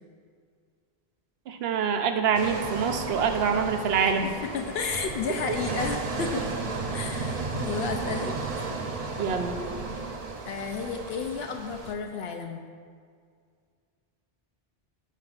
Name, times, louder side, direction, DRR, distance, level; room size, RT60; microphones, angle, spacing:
voice 1, 1.5-4.4 9.2-9.6, right 6 dB, 75° right, 6 dB, 0.9 m, -25 dB
sound 1, 2.3-11.9, right 3 dB, 45° right, 0.6 m, -34 dB
voice 2, 4.2-6.4 6.9-8.7 10.0-10.2 10.5-12.7, left 5 dB, 75° left, 4 dB, 0.8 m, -32 dB
14.5 x 5.7 x 2.4 m, 2.1 s
omnidirectional pair, 1.1 m